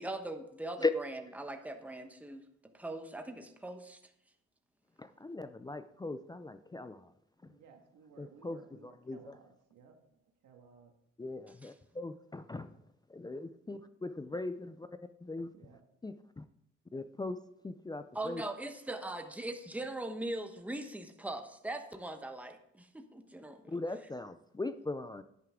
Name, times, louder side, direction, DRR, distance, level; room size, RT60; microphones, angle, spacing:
voice 1, 0.0-2.4 2.7-4.0 11.6-11.7 18.1-23.8, right 2 dB, 5° right, 6 dB, 1.1 m, -41 dB
voice 2, 5.0-7.1 8.2-9.4 11.2-12.7 13.1-14.9 15.2-15.5 16.0-16.5 16.9-17.4 17.6-18.4 23.7-25.2, left 2 dB, 15° left, 11 dB, 0.4 m, -39 dB
voice 3, 7.5-10.9 15.5-15.8, right 5 dB, 80° right, 3 dB, 1.9 m, -59 dB
10.5 x 9.4 x 3.7 m, 0.76 s
cardioid pair, 90°, 30 cm